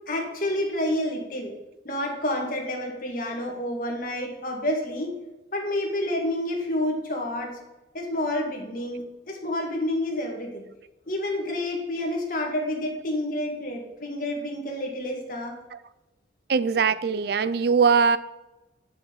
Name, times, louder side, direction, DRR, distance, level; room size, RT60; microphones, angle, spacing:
voice 1, 0.1-1.5 1.8-5.1 5.5-7.6 7.9-10.6 11.1-15.6, left 1 dB, 45° left, 0 dB, 2.1 m, -29 dB
voice 2, 16.5-18.2, right 5 dB, 55° right, 15 dB, 0.4 m, -21 dB
9.4 x 7.0 x 5.4 m, 1.0 s
head